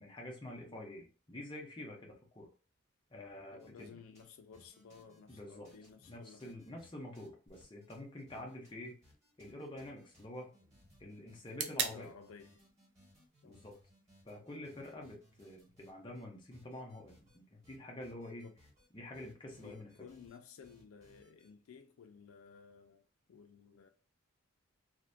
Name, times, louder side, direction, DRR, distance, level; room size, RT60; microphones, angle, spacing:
voice 1, 0.0-2.5 3.1-3.9 5.3-5.7 6.1-9.0 9.4-10.5 11.0-12.1 13.4-13.7 14.3-18.5 18.9-19.9, left 1 dB, 20° left, 0.5 m, -47 dB
voice 2, 3.5-6.6 8.3-8.5 11.9-12.6 13.4-13.7 18.4-18.6 19.6-23.9, left 6 dB, 85° left, 0.4 m, -56 dB
sound 1, 3.6-4.3 4.5-6.9 7.1-16.2 16.5-17.4 17.6-18.9 19.1-20.4 20.6-21.5, left 1 dB, 15° right, 1.2 m, -65 dB
sound 2, 7.5-15.5, right 7 dB, 55° right, 0.4 m, -46 dB
2.5 x 2.1 x 2.5 m
head